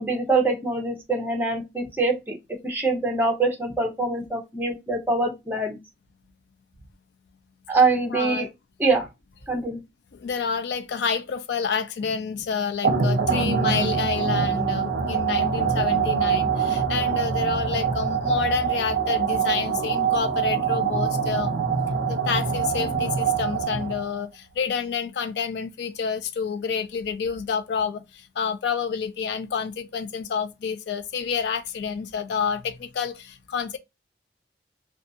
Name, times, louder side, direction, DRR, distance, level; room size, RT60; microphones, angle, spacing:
voice 1, 0.0-2.4 2.6-5.8 7.7-8.5 8.8-9.1 9.5-9.8, right 3 dB, 10° right, 0.6 m, -24 dB
voice 2, 8.1-8.5 10.1-21.6 22.1-33.8, left 6 dB, 75° left, 0.4 m, -29 dB
sound 1, 12.8-24.2, right 6 dB, 55° right, 0.5 m, -24 dB
2.5 x 2.3 x 2.6 m
head